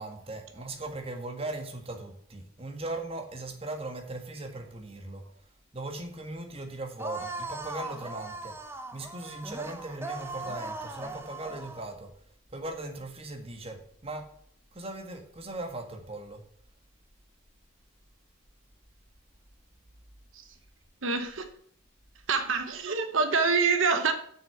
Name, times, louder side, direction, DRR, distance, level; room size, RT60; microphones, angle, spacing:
voice 1, 0.0-5.2 5.7-8.5 8.9-12.1 12.5-14.3 14.7-16.4, right 2 dB, 30° right, 3 dB, 1.6 m, -38 dB
sound 1, 7.0-11.9, right 2 dB, 10° right, 0.8 m, -39 dB
voice 2, 21.0-21.4 22.3-24.1, right 4 dB, 70° right, 7 dB, 1.1 m, -26 dB
7.1 x 6.4 x 7.9 m, 0.63 s
head